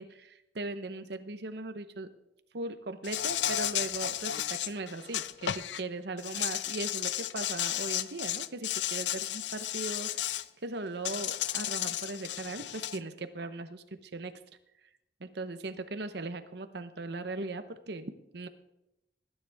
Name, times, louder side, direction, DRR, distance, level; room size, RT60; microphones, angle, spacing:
voice 1, 0.0-2.1 2.5-14.4 15.2-18.5, right 2 dB, 65° right, 10 dB, 0.9 m, -39 dB
Insect, 3.0-5.8 6.2-10.4 11.0-13.0, left 12 dB, 75° left, 0.4 m, -33 dB
20.0 x 9.8 x 3.5 m, 0.88 s
head